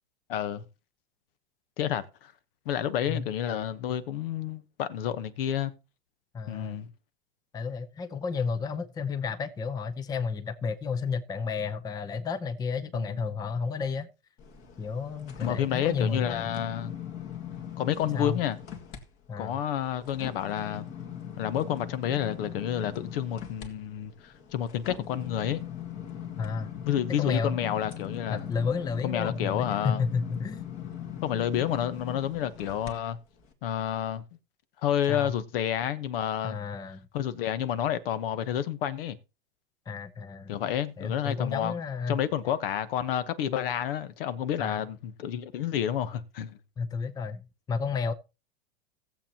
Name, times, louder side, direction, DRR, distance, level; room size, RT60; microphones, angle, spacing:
voice 1, 0.3-0.6 1.8-2.3 2.6-5.7 6.5-6.9 12.9-13.1 15.4-16.9 17.8-18.6 19.4-20.9 21.4-25.6 26.9-28.5 29.0-30.0 31.2-33.2 33.6-34.2 34.8-36.6 37.1-39.2 40.5-41.7 42.1-46.6, left 10 dB, 65° left, 1.1 m, -30 dB
voice 2, 6.3-6.8 7.5-14.1 14.8-16.5 18.1-18.4 19.3-19.6 26.4-26.7 27.2-27.6 28.3-30.7 35.1-35.3 36.4-37.1 39.9-40.6 41.0-42.2 44.6-44.8 46.8-47.4 47.7-48.1, left 5 dB, 10° left, 0.6 m, -31 dB
sound 1, 14.4-19.0 19.4-32.9 33.4-33.5, left 9 dB, 40° left, 2.0 m, -40 dB
18.5 x 7.4 x 2.9 m
supercardioid pair, 135°, 31 cm